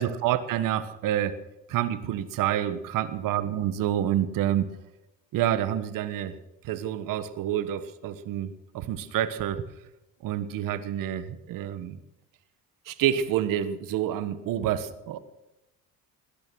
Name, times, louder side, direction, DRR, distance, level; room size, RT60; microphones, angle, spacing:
voice 1, 0.0-1.4 1.7-4.7 5.3-6.4 6.6-9.7 10.2-12.0 12.8-15.2, right 11 dB, 65° right, 13 dB, 1.5 m, -28 dB
19.0 x 11.0 x 6.3 m, 0.95 s
supercardioid pair, 95°, 35 cm